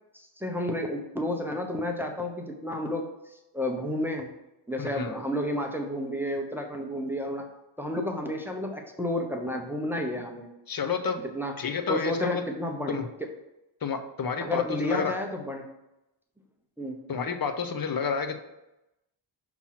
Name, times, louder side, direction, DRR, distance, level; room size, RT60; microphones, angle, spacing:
voice 1, 0.1-3.1 3.5-4.3 4.7-7.5 7.8-10.5 11.3-11.6 11.9-13.0 14.4-15.7 16.8-17.0, left 1 dB, 5° right, 1 dB, 0.7 m, -31 dB
voice 2, 4.8-5.2 10.7-11.2 11.6-12.4 12.9-13.1 13.8-15.1 17.1-18.4, left 6 dB, 45° left, 8 dB, 0.7 m, -30 dB
6.0 x 2.9 x 5.6 m, 0.93 s
wide cardioid pair, 115°, 48 cm